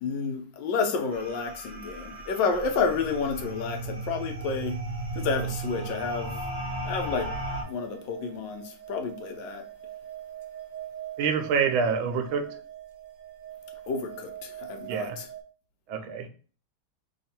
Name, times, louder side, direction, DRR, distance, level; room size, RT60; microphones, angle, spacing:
voice 1, 0.0-4.8 5.1-6.3 6.8-7.3 7.6-9.6 13.9-15.3, left 5 dB, 70° left, 1.3 m, -30 dB
sound 1, 1.1-7.6, right 2 dB, 35° right, 0.8 m, -35 dB
sound 2, 1.9-3.0 3.3-3.4 6.6-6.9 7.2-15.4, right 11 dB, 70° right, 1.4 m, -43 dB
voice 2, 11.2-12.6 14.9-15.2 15.9-16.3, right 6 dB, 90° right, 1.4 m, -27 dB
3.4 x 2.4 x 4.1 m
omnidirectional pair, 2.2 m